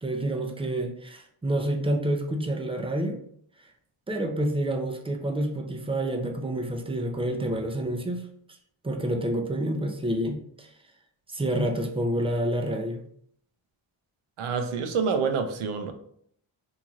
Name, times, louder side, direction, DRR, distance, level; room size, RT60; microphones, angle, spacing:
voice 1, 0.0-3.2 4.1-8.2 8.8-10.7 11.3-13.0, right 1 dB, 10° right, 4 dB, 0.4 m, -28 dB
voice 2, 14.4-15.9, right 5 dB, 80° right, 7 dB, 0.6 m, -27 dB
3.0 x 2.7 x 2.4 m, 0.64 s
cardioid pair, 70°, 49 cm